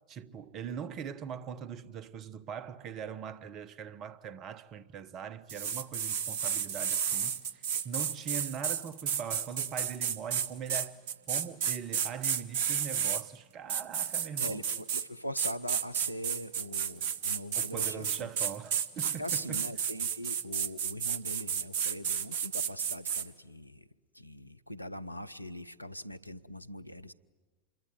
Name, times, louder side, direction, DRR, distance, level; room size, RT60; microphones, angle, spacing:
voice 1, 0.1-11.0 11.3-14.6 17.5-19.7, right 7 dB, 35° right, 1.1 m, -41 dB
sound 1, 5.5-13.2 13.7-15.1 15.4-23.3, right 8 dB, 50° right, 1.2 m, -32 dB
voice 2, 14.4-18.3 19.2-23.9 24.2-27.1, equal, 90° left, 0.7 m, -42 dB
27.5 x 22.5 x 9.4 m
figure-of-eight pair, 90°, 0 cm